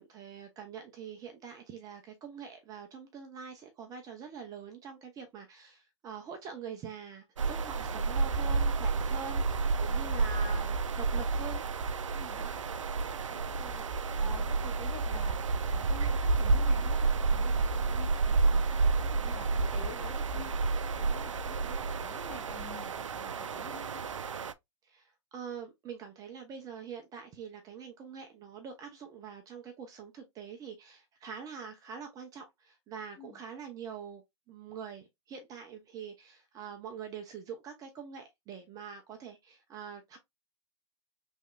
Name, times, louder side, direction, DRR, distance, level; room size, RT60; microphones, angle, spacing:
voice 1, 0.0-11.6 12.3-12.5 24.8-34.2 34.5-40.2, right 7 dB, 25° right, 0.6 m, -44 dB
sound 1, 7.4-24.5, right 4 dB, 85° right, 0.4 m, -30 dB
voice 2, 7.7-8.1 12.1-12.4 13.3-13.9 14.1-20.5 20.8-24.0 33.2-33.4, left 3 dB, 20° left, 1.3 m, -49 dB
3.6 x 3.2 x 2.2 m
figure-of-eight pair, 115°, 16 cm